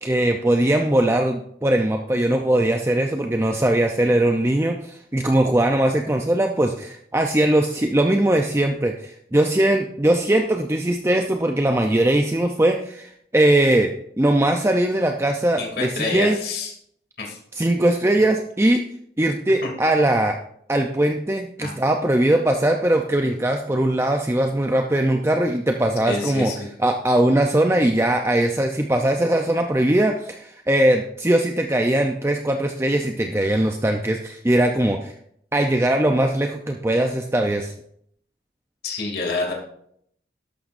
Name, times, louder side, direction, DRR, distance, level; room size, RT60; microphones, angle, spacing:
voice 1, 0.0-16.4 17.6-18.9 19.2-20.4 20.7-26.5 26.8-35.1 35.5-37.7, right 1 dB, 15° right, 3 dB, 0.6 m, -20 dB
voice 2, 15.6-16.7 17.2-17.4 19.6-19.7 21.6-21.7 26.0-26.7 38.8-39.5, left 3 dB, 60° left, -1 dB, 2.7 m, -27 dB
13.0 x 11.5 x 2.6 m, 0.69 s
head